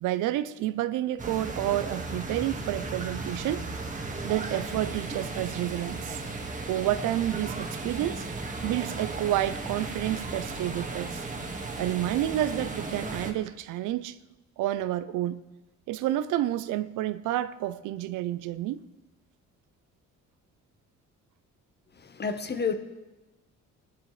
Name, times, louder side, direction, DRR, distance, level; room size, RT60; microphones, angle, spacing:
voice 1, 0.0-3.6 4.2-6.2 6.7-8.3 8.6-11.2 11.8-14.2 14.6-15.4 15.9-18.8, right 13 dB, 90° right, 0.6 m, -29 dB
sound 1, 1.2-13.3, right 3 dB, 25° right, 1.7 m, -35 dB
voice 2, 22.0-22.7, left 5 dB, 35° left, 1.2 m, -30 dB
20.0 x 12.0 x 3.2 m
cardioid pair, 90°, 30 cm